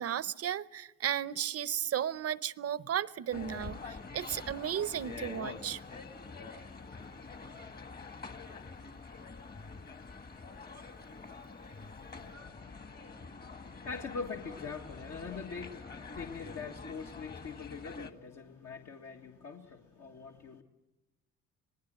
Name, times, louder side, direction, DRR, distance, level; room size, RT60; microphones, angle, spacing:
voice 1, 0.0-5.8, right 10 dB, 50° right, 0.7 m, -34 dB
sound 1, 3.3-18.1, left 4 dB, 30° left, 1.6 m, -46 dB
voice 2, 12.1-20.6, left 5 dB, 65° left, 1.8 m, -44 dB
26.5 x 19.5 x 7.7 m
cardioid pair, 90°, 30 cm